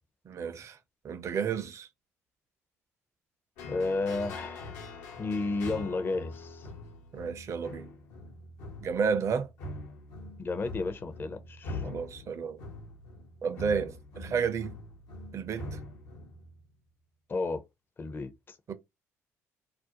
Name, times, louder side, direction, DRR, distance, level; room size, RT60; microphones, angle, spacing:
voice 1, 0.3-0.8 1.0-1.9 7.1-7.9 8.8-9.5 11.8-12.6 13.4-14.8 15.3-15.8 18.7-18.8, right 6 dB, 50° right, 0.5 m, -31 dB
sound 1, 3.6-16.7, left 2 dB, 80° left, 0.6 m, -43 dB
voice 2, 3.7-4.7 5.2-6.7 10.4-11.9 17.3-17.6 18.0-18.6, left 3 dB, 35° left, 0.5 m, -32 dB
2.4 x 2.0 x 2.7 m
hypercardioid pair, 60°, 6 cm